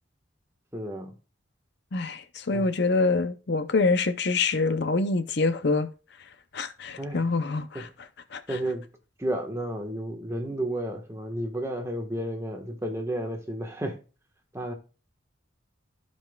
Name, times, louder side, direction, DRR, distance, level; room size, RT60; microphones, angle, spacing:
voice 1, 0.7-1.1 2.5-2.7 7.0-7.3 7.7-7.9 8.5-8.9 9.2-14.0 14.5-14.7, right 1 dB, 15° right, 1.3 m, -32 dB
voice 2, 1.9-5.9 6.5-7.9 8.3-8.6, left 3 dB, 55° left, 0.6 m, -25 dB
15.0 x 5.3 x 2.3 m
head